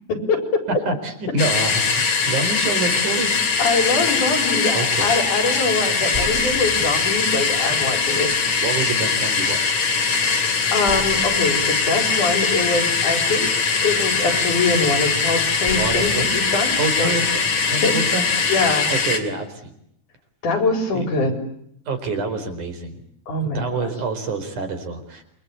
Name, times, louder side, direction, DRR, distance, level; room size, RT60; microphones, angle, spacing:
voice 1, 0.1-0.6 3.6-8.3 10.7-13.5 13.8-17.2 17.8-18.0 18.5-18.9 20.4-21.3 23.3-23.9, left 3 dB, 85° left, 6 dB, 5.7 m, -23 dB
voice 2, 0.9-3.3 4.7-5.2 7.7-8.0 8.6-9.7 15.7-16.3 16.8-18.3 18.9-19.7 20.9-21.1 21.9-23.0 23.5-25.2, right 3 dB, 80° right, 8 dB, 5.8 m, -27 dB
sound 1, 1.4-19.2, left 5 dB, 65° left, 4.4 m, -21 dB
sound 2, 6.1-7.4 8.3-8.4 10.9-13.0 13.6-14.5 15.7-17.7, equal, 20° left, 4.9 m, -36 dB
28.0 x 24.0 x 8.5 m, 0.72 s
omnidirectional pair, 3.5 m